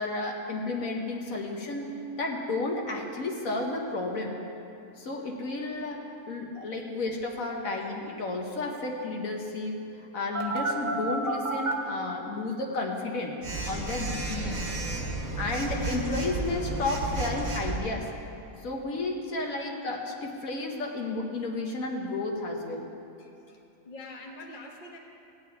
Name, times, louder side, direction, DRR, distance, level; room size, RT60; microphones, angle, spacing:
voice 1, 0.0-4.4 5.0-13.3 13.6-14.6 15.4-18.1 18.6-22.9, left 2 dB, 70° left, 0 dB, 1.4 m, -32 dB
Telephone, 10.3-11.7 13.4-17.8, right 2 dB, 60° right, 1.7 m, -31 dB
voice 2, 23.8-25.0, left 2 dB, 35° left, 0 dB, 1.2 m, -44 dB
16.5 x 9.9 x 3.4 m, 2.8 s
omnidirectional pair, 1.5 m